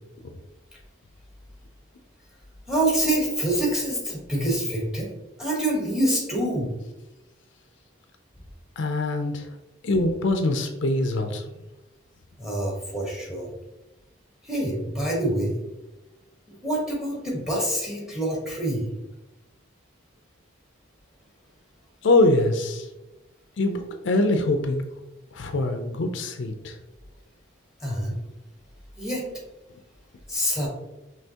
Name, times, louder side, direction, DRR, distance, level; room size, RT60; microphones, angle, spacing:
voice 1, 2.7-5.1 5.4-6.7 12.4-13.5 14.4-15.6 16.5-18.9 27.8-28.2 29.0-29.2 30.3-30.7, right 1 dB, 5° right, -3 dB, 1.2 m, -26 dB
voice 2, 8.8-9.5 9.8-11.4 22.0-22.9 23.6-24.8 25.3-26.8, left 2 dB, 65° left, 6 dB, 0.5 m, -23 dB
5.4 x 3.2 x 2.8 m, 1.0 s
head